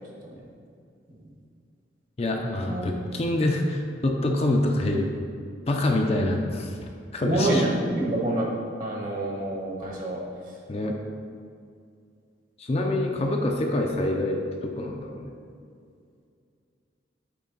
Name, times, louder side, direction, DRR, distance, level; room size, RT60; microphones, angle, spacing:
voice 1, 2.2-5.1 5.7-6.7 7.1-7.6 10.7-11.0 12.6-15.3, left 1 dB, 35° left, 1 dB, 0.5 m, -26 dB
voice 2, 7.2-8.5 8.8-10.2, right 1 dB, 45° right, -3 dB, 1.2 m, -26 dB
8.3 x 3.3 x 3.9 m, 2.3 s
head